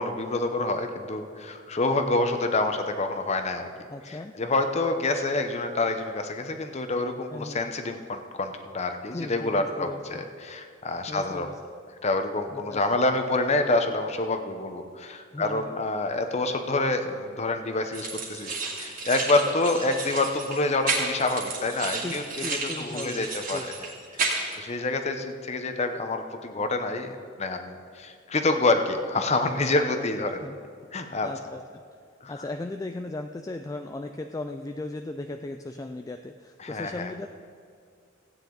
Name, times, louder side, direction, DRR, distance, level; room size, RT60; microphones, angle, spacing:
voice 1, 0.0-3.7 4.1-11.5 12.0-23.6 24.2-24.3 24.6-30.4 30.9-31.3 32.2-32.3 36.6-37.1, left 2 dB, 35° left, 7 dB, 0.8 m, -27 dB
voice 2, 3.9-4.4 7.3-7.6 9.1-10.2 11.1-11.6 12.5-12.8 15.3-15.8 22.0-23.7 30.0-30.6 31.2-31.8 32.3-37.3, left 2 dB, 15° left, 6 dB, 0.3 m, -37 dB
sound 1, 17.9-24.6, right 3 dB, 45° right, 2.3 m, -32 dB
15.5 x 9.0 x 3.9 m, 2.3 s
head